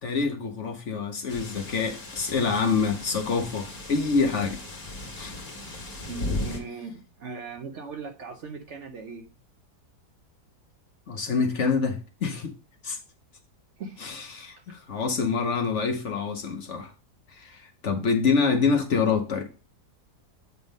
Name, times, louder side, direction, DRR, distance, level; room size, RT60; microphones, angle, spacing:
voice 1, 0.0-4.6 5.2-5.3 11.1-12.5 12.8-13.0 14.0-16.9 17.3-19.5, left 5 dB, 55° left, 1.0 m, -26 dB
sound 1, 1.3-6.6, left 2 dB, 35° left, 2.1 m, -36 dB
voice 2, 6.0-9.3 13.8-14.0, right 4 dB, 60° right, 0.8 m, -38 dB
8.0 x 3.6 x 5.1 m
omnidirectional pair, 1.7 m